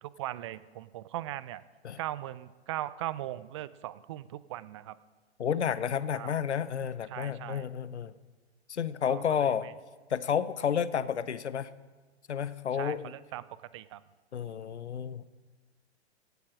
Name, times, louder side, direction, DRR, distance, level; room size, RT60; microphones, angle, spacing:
voice 1, 0.0-1.6 2.0-5.0 6.1-6.4 7.1-7.7 9.1-9.7 12.7-13.4 13.7-14.0, right 14 dB, 30° right, 17 dB, 0.4 m, -39 dB
voice 2, 5.4-8.1 8.7-9.7 10.1-11.7 12.3-13.1 14.3-15.2, left 8 dB, 80° left, 16 dB, 0.7 m, -31 dB
16.5 x 8.4 x 6.1 m, 1.4 s
figure-of-eight pair, 115°, 33 cm